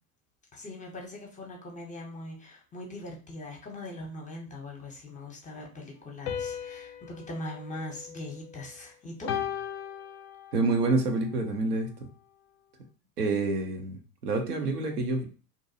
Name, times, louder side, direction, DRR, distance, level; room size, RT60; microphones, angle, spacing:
voice 1, 0.5-9.3, left 1 dB, 15° left, 0 dB, 0.7 m, -41 dB
sound 1, 6.3-8.7 9.3-10.8, left 9 dB, 50° left, 0.4 m, -37 dB
voice 2, 10.5-11.9 13.2-15.3, right 3 dB, 80° right, 3 dB, 0.7 m, -27 dB
2.6 x 2.2 x 2.7 m, 0.36 s
figure-of-eight pair, 80°, 46 cm